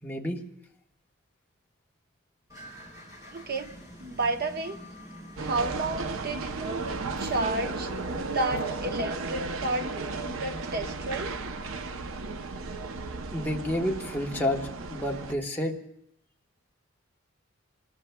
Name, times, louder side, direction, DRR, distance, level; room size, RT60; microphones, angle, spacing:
voice 1, 0.0-0.4 13.3-15.8, left 1 dB, 10° left, -1 dB, 1.2 m, -30 dB
sound 1, 2.5-8.6, equal, 15° right, 4.5 m, -47 dB
voice 2, 3.3-3.7 4.0-4.8 5.4-6.8 7.2-7.9 8.3-11.4, right 2 dB, 45° right, 6 dB, 1.0 m, -31 dB
sound 2, 5.4-15.3, right 3 dB, 75° right, 0.7 m, -34 dB
26.5 x 21.0 x 2.3 m, 0.74 s
head